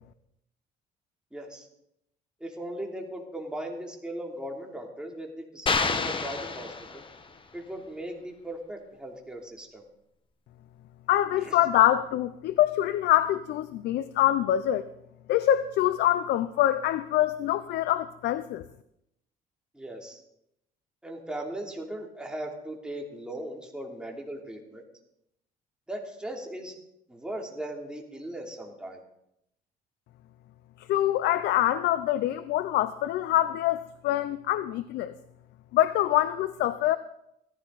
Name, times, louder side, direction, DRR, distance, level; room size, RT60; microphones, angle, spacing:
voice 1, 1.3-1.7 2.4-7.0 7.5-9.8 11.4-11.5 19.7-20.2 21.0-24.8 25.9-26.7 27.1-29.0, right 1 dB, 5° right, 0 dB, 3.2 m, -38 dB
sound 1, 5.7-7.4, left 4 dB, 30° left, 1.2 m, -29 dB
voice 2, 11.1-14.9 15.3-18.6 30.8-35.1 35.7-37.0, left 13 dB, 80° left, 14 dB, 0.6 m, -25 dB
17.5 x 15.0 x 4.1 m, 0.79 s
cardioid pair, 110°, 17 cm